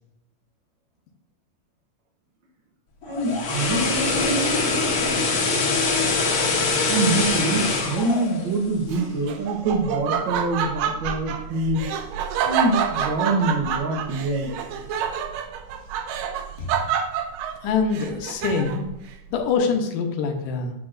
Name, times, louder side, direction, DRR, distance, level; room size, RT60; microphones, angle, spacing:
sound 1, 3.0-9.2 9.6-9.8, left 3 dB, 55° left, 2.1 m, -23 dB
voice 1, 3.1-4.6 6.9-11.9 12.4-14.5, right 2 dB, 65° right, 2 dB, 1.2 m, -25 dB
Laughter, 8.9-18.9, right 8 dB, 90° right, 2.4 m, -28 dB
voice 2, 16.6-16.9 17.6-18.9 19.3-20.7, left 5 dB, 80° left, 3 dB, 2.5 m, -25 dB
9.4 x 5.9 x 2.6 m, 0.89 s
omnidirectional pair, 3.8 m